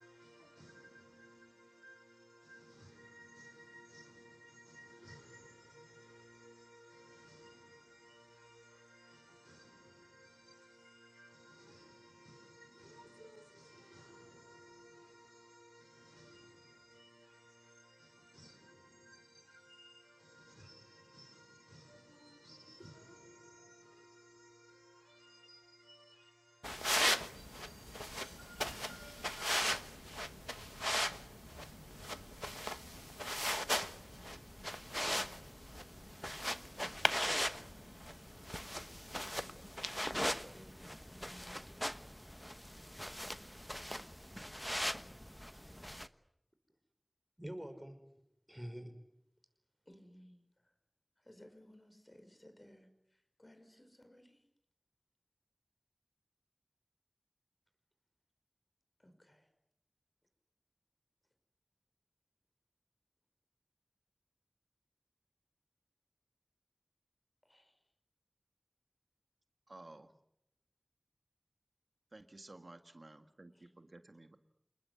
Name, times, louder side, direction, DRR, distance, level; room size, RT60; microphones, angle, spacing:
voice 1, 0.0-29.6 47.4-48.0 48.5-48.9, equal, 15° right, 5.5 m, -57 dB
sound 1, 26.6-46.1, equal, 10° left, 1.2 m, -39 dB
voice 2, 39.2-42.0 49.9-50.7 51.2-54.5 59.0-59.5 67.4-67.8 73.5-73.7, equal, 40° left, 5.4 m, -61 dB
voice 3, 69.7-70.1 72.1-74.4, right 2 dB, 80° right, 1.6 m, -54 dB
28.5 x 20.0 x 9.6 m
wide cardioid pair, 40°, 0 cm